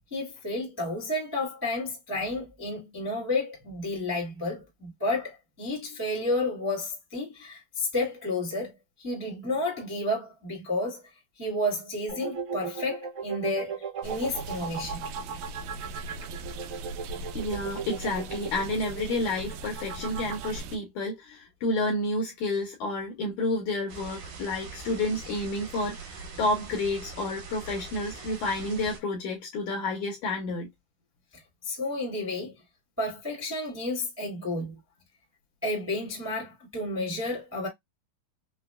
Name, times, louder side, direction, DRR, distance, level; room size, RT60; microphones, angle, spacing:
voice 1, 0.1-8.7 9.0-11.0 11.4-15.0 31.6-32.5 33.0-34.8 35.6-37.7, left 2 dB, 10° right, 0.7 m, -31 dB
sound 1, 12.1-20.6, right 6 dB, 45° right, 1.0 m, -36 dB
sound 2, 14.0-20.8, right 3 dB, 80° right, 1.9 m, -40 dB
voice 2, 17.4-30.7, left 2 dB, 80° left, 1.8 m, -30 dB
sound 3, 23.9-29.0, right 4 dB, 65° right, 2.6 m, -42 dB
5.6 x 2.0 x 2.2 m
omnidirectional pair, 4.1 m